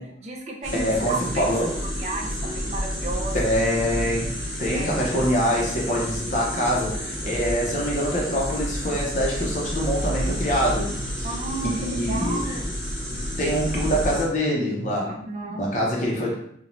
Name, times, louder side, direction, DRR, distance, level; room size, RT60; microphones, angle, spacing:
voice 1, 0.0-1.5 1.8-3.4 4.7-4.9 11.2-12.8 15.1-15.6, right 2 dB, 35° right, 0 dB, 0.4 m, -33 dB
sound 1, 0.6-14.2, equal, ahead, 0.9 m, -30 dB
voice 2, 0.7-1.8 3.3-10.9 11.2-11.3 11.6-12.4 13.1-15.2 15.5-16.3, equal, 40° left, -3 dB, 0.6 m, -25 dB
2.6 x 2.1 x 3.0 m, 0.70 s
head